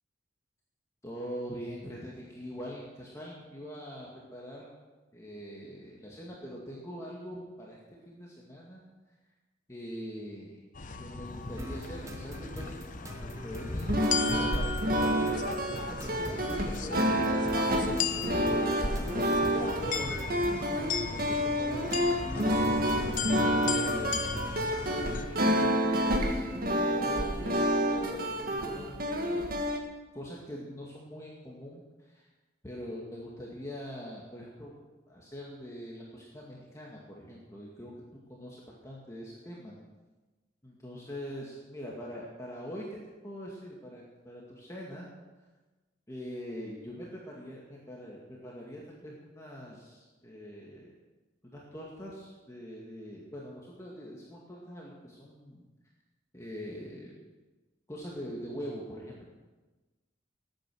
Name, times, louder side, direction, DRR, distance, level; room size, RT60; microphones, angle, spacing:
voice 1, 1.0-4.7 5.1-7.8 8.1-8.8 9.7-10.6 10.9-12.9 13.2-17.4 18.2-19.5 19.8-22.8 23.4-24.5 25.1-26.5 26.9-29.6 30.1-32.3 32.6-34.8 35.1-37.9 38.3-39.7 40.6-42.9 43.2-45.1 46.1-50.9 51.4-55.7 56.3-57.1 57.9-59.3, equal, 15° left, -4 dB, 2.1 m, -43 dB
sound 1, 10.7-25.2, left 5 dB, 45° left, 0.9 m, -36 dB
sound 2, 11.6-24.7, right 1 dB, 15° right, 0.9 m, -45 dB
sound 3, 13.8-29.8, equal, 50° right, 1.8 m, -29 dB
19.0 x 9.0 x 6.3 m, 1.2 s
head